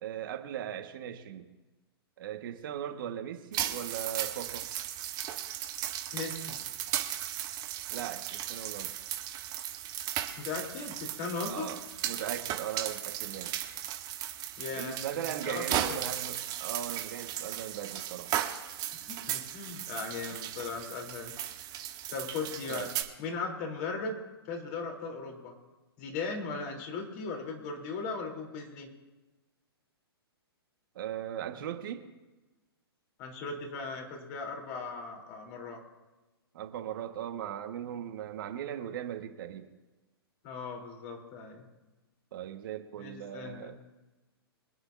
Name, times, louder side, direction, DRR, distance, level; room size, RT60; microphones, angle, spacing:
voice 1, 0.0-1.5 2.2-4.7 7.9-8.9 11.5-11.8 12.0-13.5 14.7-18.3 22.7-22.9 30.9-32.0 36.5-39.7 42.3-43.8, right 10 dB, 55° right, 4 dB, 1.6 m, -38 dB
sound 1, 3.5-23.0, right 11 dB, 30° right, 1.4 m, -36 dB
voice 2, 6.1-6.6 10.4-11.7 14.6-16.1 19.1-21.3 22.1-22.9 23.2-24.2 24.5-25.5 26.0-28.9 33.2-35.8 40.4-41.6 43.0-43.7, left 4 dB, 40° left, 1 dB, 3.6 m, -38 dB
25.0 x 9.7 x 2.7 m, 1.1 s
hypercardioid pair, 120°, 13 cm